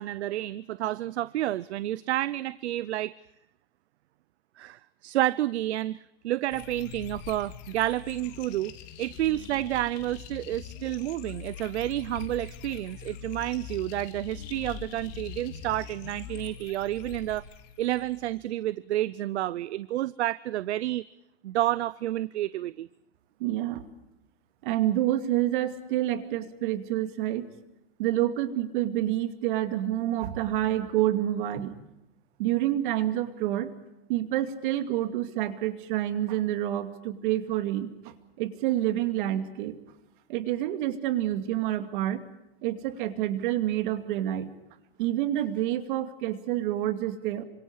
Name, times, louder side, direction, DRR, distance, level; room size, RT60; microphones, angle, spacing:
voice 1, 0.0-3.1 4.6-17.4 17.8-21.0 21.4-22.9, right 14 dB, 85° right, 18 dB, 0.7 m, -30 dB
sound 1, 6.5-18.5, left 9 dB, 40° left, 2.4 m, -43 dB
voice 2, 23.4-23.8 24.6-27.5 28.0-31.7 32.4-33.7 34.1-37.9 38.4-39.7 40.3-42.2 42.6-44.5 45.0-47.4, right 13 dB, 50° right, 8 dB, 2.4 m, -28 dB
28.0 x 26.0 x 4.8 m, 0.89 s
supercardioid pair, 160°, 32 cm